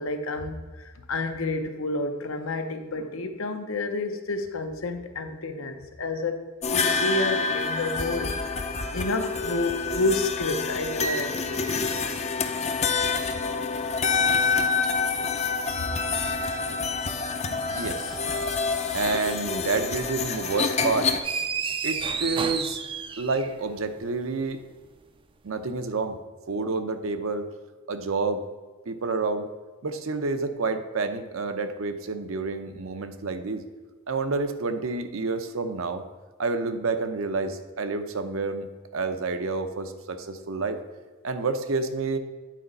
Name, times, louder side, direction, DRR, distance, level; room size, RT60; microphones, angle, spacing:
voice 1, 0.0-11.7 14.0-14.1 15.1-15.3 15.8-15.9, left 2 dB, 75° left, 6 dB, 0.8 m, -30 dB
sound 1, 6.6-21.2, left 4 dB, 30° left, 0.5 m, -27 dB
voice 2, 17.7-18.0 18.9-21.1 21.8-22.8 23.2-24.6 25.4-26.2 26.5-27.5 27.9-28.4 28.9-29.5 29.8-33.6 34.1-36.0 36.4-38.7 38.9-40.8 41.2-42.2, right 3 dB, 80° right, 8 dB, 0.7 m, -29 dB
sound 2, 21.2-23.8, right 5 dB, 25° right, 0.3 m, -30 dB
9.2 x 4.0 x 5.3 m, 1.3 s
head